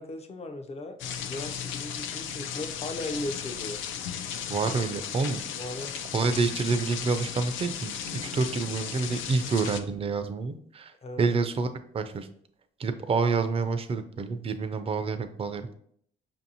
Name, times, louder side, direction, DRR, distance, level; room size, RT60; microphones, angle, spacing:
voice 1, 0.0-3.8 5.5-6.0 11.0-11.2, left 2 dB, 30° left, 6 dB, 0.5 m, -37 dB
sound 1, 1.0-9.8, left 8 dB, 80° left, 0.4 m, -36 dB
voice 2, 4.5-5.4 6.1-11.7 11.9-12.3 12.8-15.7, right 4 dB, 30° right, 9 dB, 0.4 m, -28 dB
5.2 x 2.6 x 2.8 m, 0.63 s
cardioid pair, 90°, 20 cm